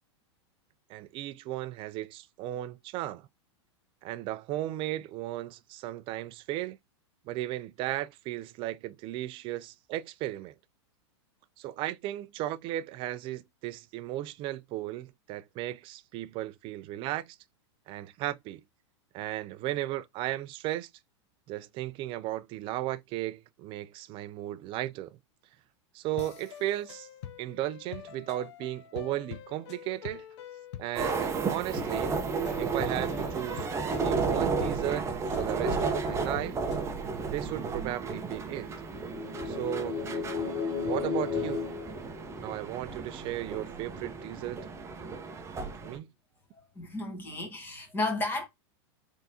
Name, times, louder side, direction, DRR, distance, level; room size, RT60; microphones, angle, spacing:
voice 1, 0.9-3.3 4.0-6.8 7.3-10.5 11.6-17.4 17.9-18.6 19.1-20.9 21.5-25.2 25.9-27.1 27.4-30.2 30.8-32.2 32.6-36.6 37.3-38.7 39.4-40.0 40.8-41.7 42.4-44.6 45.8-46.1, right 14 dB, 35° right, 0.4 m, -35 dB
sound 1, 26.2-36.9, left 10 dB, 70° left, 0.6 m, -46 dB
sound 2, 31.0-46.0, right 4 dB, 20° right, 0.8 m, -33 dB
sound 3, 38.9-42.8, left 5 dB, 35° left, 1.4 m, -34 dB
voice 2, 46.6-48.5, left 2 dB, 15° left, 1.9 m, -33 dB
3.7 x 3.5 x 2.8 m
hypercardioid pair, 120°, 15 cm